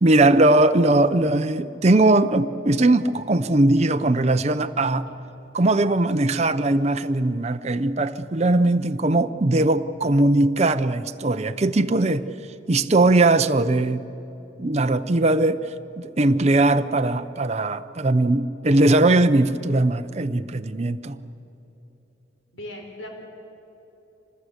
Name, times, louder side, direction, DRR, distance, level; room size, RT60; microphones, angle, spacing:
voice 1, 0.0-5.1 5.5-12.2 12.7-14.0 14.6-15.7 16.0-21.2, right 2 dB, 35° right, 9 dB, 0.6 m, -20 dB
voice 2, 22.5-23.1, left 1 dB, 85° left, 2 dB, 4.2 m, -37 dB
26.0 x 20.0 x 8.1 m, 3.0 s
head